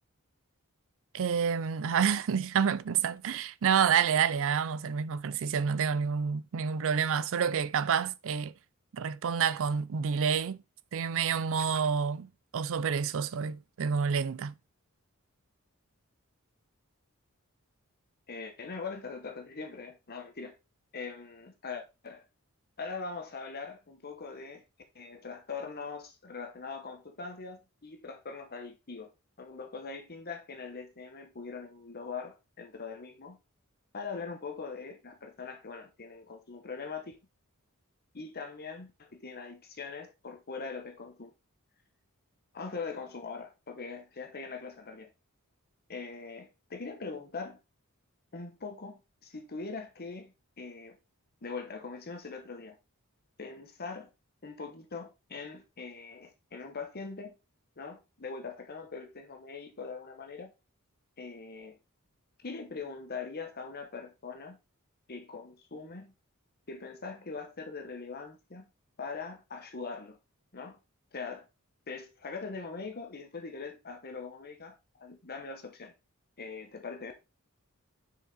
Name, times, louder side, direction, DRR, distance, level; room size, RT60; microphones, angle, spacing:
voice 1, 1.1-8.5 8.9-10.6 10.9-14.5, right 7 dB, 65° right, 0.5 m, -28 dB
voice 2, 18.3-20.5 20.9-22.2 22.8-24.6 24.9-29.1 29.4-33.4 33.9-37.2 38.1-41.3 42.5-45.1 45.9-47.6 48.3-51.0 51.4-52.8 53.4-54.1 54.4-57.3 57.8-60.5 61.2-61.8 62.4-64.6 65.1-66.1 66.7-68.7 69.0-70.2 70.5-70.8 71.1-71.5 71.9-75.9 76.4-77.1, left 4 dB, 45° left, 1.1 m, -42 dB
6.4 x 4.9 x 4.0 m
head